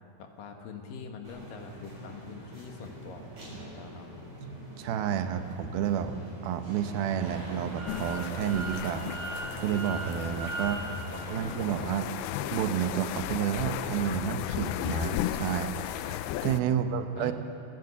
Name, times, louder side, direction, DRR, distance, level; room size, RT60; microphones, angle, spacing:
voice 1, 0.2-4.1 10.6-11.6 16.7-17.3, left 4 dB, 70° left, 4 dB, 3.1 m, -45 dB
sound 1, 1.2-10.1, equal, 40° right, 7.8 m, -45 dB
voice 2, 4.4-6.2 6.4-9.2 9.6-17.3, right 9 dB, 80° right, 8 dB, 2.7 m, -31 dB
sound 2, 6.7-11.9, right 1 dB, 65° right, 6.1 m, -39 dB
sound 3, 7.9-16.6, left 12 dB, 90° left, 2.5 m, -35 dB
29.5 x 10.5 x 8.3 m, 2.7 s
omnidirectional pair, 4.3 m